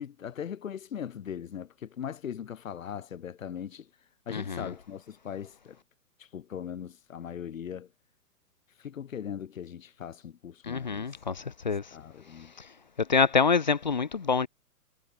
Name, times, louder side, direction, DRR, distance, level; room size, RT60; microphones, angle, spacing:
voice 1, 0.0-3.9 4.3-5.8 6.2-7.9 8.8-11.2 11.9-12.5, left 8 dB, 60° left, 7.0 m, -39 dB
voice 2, 4.3-4.6 10.7-11.8 13.1-14.5, left 5 dB, 30° left, 0.5 m, -26 dB
hypercardioid pair, 175°, 46 cm